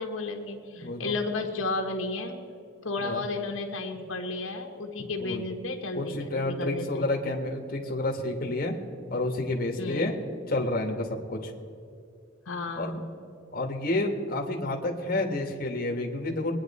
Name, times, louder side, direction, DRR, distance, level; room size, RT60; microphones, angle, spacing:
voice 1, 0.0-2.4 2.8-7.0 9.8-10.3 12.5-13.0, left 3 dB, 80° left, 2 dB, 1.5 m, -33 dB
voice 2, 0.7-1.2 3.0-3.2 5.2-5.4 5.9-8.8 9.1-11.5 12.8-13.0 13.5-16.5, left 2 dB, 45° left, 1 dB, 1.4 m, -30 dB
22.5 x 10.0 x 4.2 m, 2.4 s
head